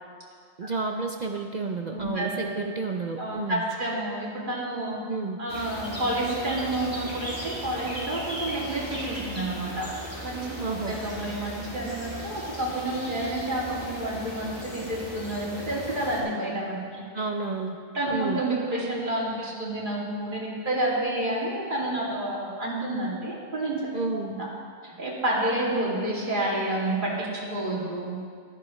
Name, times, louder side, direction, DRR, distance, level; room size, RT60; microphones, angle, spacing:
voice 1, 0.6-3.6 5.1-5.4 10.6-10.9 17.1-17.8 18.1-18.4 23.9-24.3, right 4 dB, 50° right, 3 dB, 0.5 m, -30 dB
voice 2, 1.9-2.5 3.2-5.0 5.4-9.9 10.2-17.0 17.9-23.8 24.1-24.5 24.8-28.2, right 1 dB, 35° right, -6 dB, 2.7 m, -29 dB
sound 1, 5.5-16.2, equal, 20° left, 2.6 m, -37 dB
15.0 x 13.0 x 3.2 m, 2.2 s
omnidirectional pair, 1.4 m